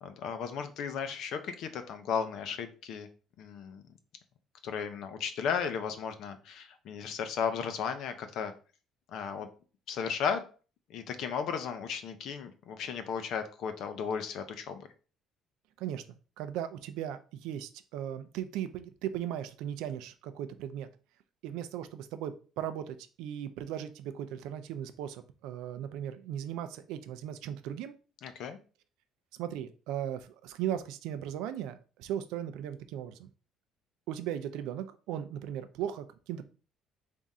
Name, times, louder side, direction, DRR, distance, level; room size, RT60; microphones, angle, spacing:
voice 1, 0.0-3.1 3.4-3.8 4.6-8.5 9.1-9.5 9.9-10.4 10.9-14.9 28.2-28.6, left 6 dB, 55° left, 9 dB, 0.5 m, -35 dB
voice 2, 16.4-20.9 21.4-27.9 29.3-33.3 34.1-36.5, right 10 dB, 85° right, 10 dB, 0.4 m, -37 dB
3.6 x 2.5 x 4.1 m, 0.37 s
cardioid pair, 175°, 0 cm